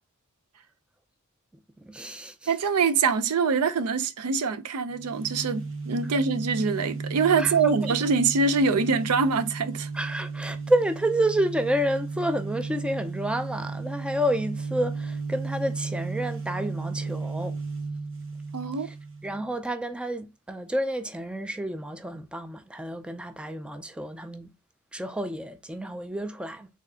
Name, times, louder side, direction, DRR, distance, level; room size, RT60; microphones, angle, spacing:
voice 1, 1.8-2.5 7.4-7.9 9.9-17.5 18.7-19.0 19.2-24.5 24.9-26.7, right 1 dB, 5° right, 0.3 m, -29 dB
voice 2, 2.5-9.9 18.5-18.9, right 5 dB, 85° right, 0.5 m, -24 dB
sound 1, 4.9-19.5, right 4 dB, 60° right, 1.1 m, -34 dB
3.9 x 3.6 x 2.7 m
head